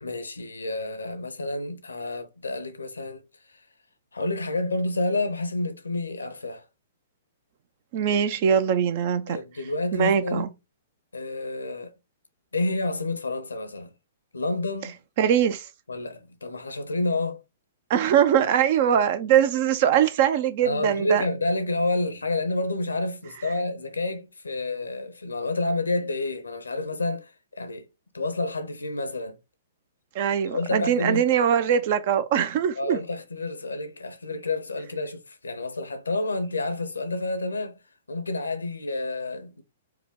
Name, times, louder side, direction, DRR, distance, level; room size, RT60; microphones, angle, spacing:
voice 1, 0.0-3.6 4.1-6.7 9.3-10.5 11.1-11.9 12.5-13.9 14.3-15.0 15.9-17.4 20.6-27.9 28.1-29.4 30.5-31.2 32.8-37.8 38.1-39.6, left 2 dB, 75° left, 0.7 m, -29 dB
voice 2, 7.9-9.4 9.9-10.5 15.2-15.7 17.9-21.2 30.1-33.0, right 9 dB, 45° right, 0.5 m, -22 dB
4.7 x 2.2 x 3.6 m
figure-of-eight pair, 110°, 0 cm